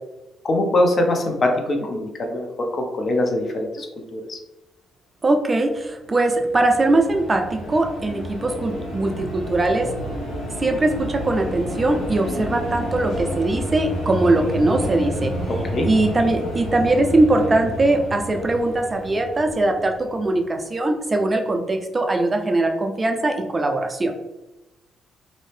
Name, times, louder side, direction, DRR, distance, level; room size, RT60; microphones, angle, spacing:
voice 1, 0.4-3.9 4.1-4.4 15.6-15.9, left 1 dB, 45° left, 3 dB, 0.6 m, -22 dB
voice 2, 5.2-9.9 10.6-15.3 15.8-24.1, right 2 dB, 25° right, 4 dB, 0.4 m, -21 dB
sound 1, 6.0-20.5, equal, 90° left, 0.9 m, -30 dB
2.6 x 2.0 x 3.2 m, 1.0 s
cardioid pair, 90°, 0 cm